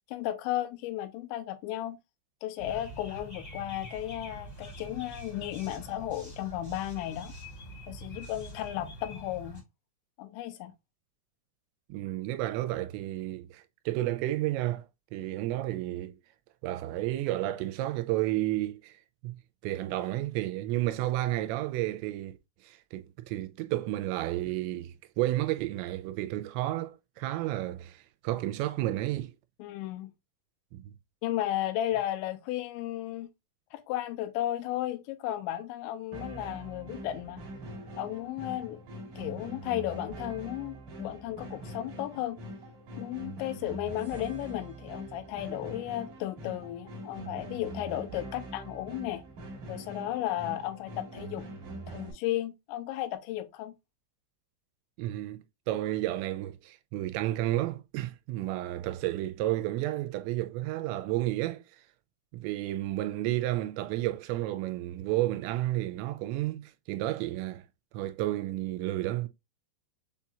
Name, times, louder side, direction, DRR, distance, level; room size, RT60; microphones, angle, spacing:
voice 1, 0.1-2.0 2.4-7.3 7.9-9.6 10.2-10.7 29.6-30.1 31.2-33.3 33.7-37.4 38.0-38.8 39.2-42.4 43.0-49.2 49.7-51.5 51.9-53.7, left 13 dB, 85° left, 2.9 m, -34 dB
sound 1, 2.6-9.6, right 1 dB, 10° left, 0.9 m, -45 dB
voice 2, 11.9-14.9 15.1-16.2 16.6-18.9 19.2-22.4 22.6-29.3 30.7-30.9 55.0-61.6 62.3-67.6 67.9-69.3, right 15 dB, 85° right, 2.8 m, -31 dB
sound 2, 36.1-52.1, right 1 dB, 60° right, 2.3 m, -43 dB
7.0 x 2.8 x 2.3 m
omnidirectional pair, 5.2 m